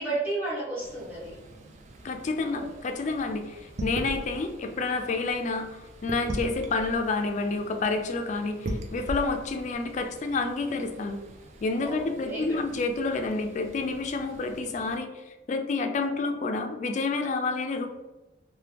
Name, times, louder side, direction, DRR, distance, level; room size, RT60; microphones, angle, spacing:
voice 1, 0.0-1.4 2.4-2.7 11.8-12.6, right 2 dB, 10° right, -9 dB, 1.3 m, -33 dB
sound 1, 0.8-15.0, right 1 dB, 40° right, 0.4 m, -41 dB
voice 2, 2.0-5.7 6.0-11.2 11.6-15.1 15.5-17.9, left 3 dB, 40° left, 5 dB, 0.3 m, -29 dB
2.9 x 2.2 x 3.3 m, 1.1 s
head